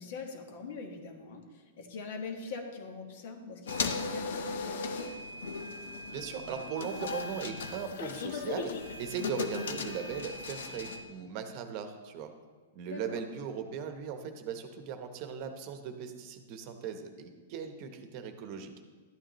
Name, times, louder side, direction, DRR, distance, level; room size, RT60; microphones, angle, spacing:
voice 1, 0.0-5.1 12.9-13.2, left 4 dB, 60° left, 3 dB, 1.5 m, -42 dB
sound 1, 3.7-11.0, left 4 dB, 75° left, 0.9 m, -37 dB
voice 2, 6.1-12.3 12.7-18.7, right 7 dB, 45° right, 7 dB, 0.9 m, -39 dB
12.0 x 8.9 x 3.1 m, 1.4 s
hypercardioid pair, 140°, 0 cm